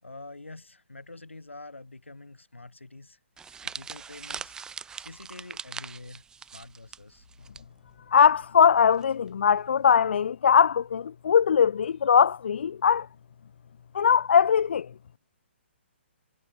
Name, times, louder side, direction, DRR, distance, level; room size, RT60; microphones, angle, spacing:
voice 1, 0.0-3.2 3.6-4.5 4.9-7.3, left 2 dB, 90° left, 6.5 m, -46 dB
sound 1, 3.4-7.6 7.9-8.1 9.0-9.3, right 6 dB, 10° right, 6.0 m, -41 dB
voice 2, 8.1-13.1 13.9-14.9, left 7 dB, 65° left, 0.4 m, -21 dB
figure-of-eight pair, 135°, 6 cm